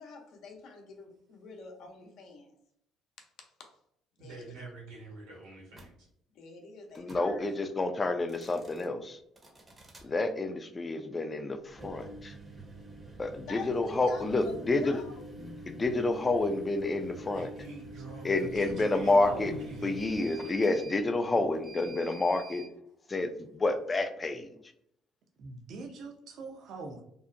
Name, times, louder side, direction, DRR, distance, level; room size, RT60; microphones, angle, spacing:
voice 1, 0.0-2.5 3.6-3.7 4.2-4.6 6.3-7.4 13.5-14.5 14.8-15.3, left 3 dB, 65° left, 2 dB, 0.6 m, -46 dB
voice 2, 4.2-6.1 17.3-20.0, right 2 dB, 85° right, -2 dB, 1.2 m, -46 dB
sound 1, 5.7-5.9 6.9-7.3 8.2-8.9 9.4-10.1 11.7-22.7, right 2 dB, 25° right, 0.6 m, -47 dB
voice 3, 7.0-9.2 10.0-12.3 13.2-15.0 15.4-17.5 18.2-19.5 19.8-22.6 23.1-24.5, left 2 dB, 25° left, 8 dB, 0.4 m, -29 dB
voice 4, 18.4-19.8 25.4-27.0, right 3 dB, 65° right, 4 dB, 0.5 m, -42 dB
2.6 x 2.1 x 2.5 m, 0.73 s
supercardioid pair, 80°, 0 cm